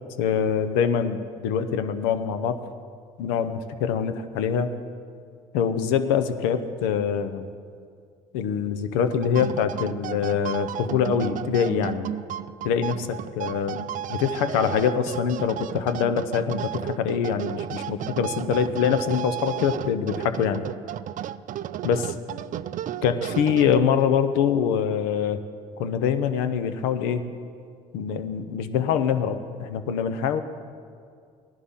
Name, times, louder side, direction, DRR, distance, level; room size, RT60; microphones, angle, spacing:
voice 1, 0.2-2.6 3.2-4.7 5.5-7.5 8.3-12.1 12.6-20.6 21.8-22.1 23.0-25.4 25.8-27.2 27.9-30.4, left 7 dB, 85° left, 10 dB, 0.7 m, -24 dB
sound 1, 9.1-24.1, right 11 dB, 50° right, 0.4 m, -33 dB
17.0 x 11.0 x 3.7 m, 2.2 s
supercardioid pair, 65°, 17 cm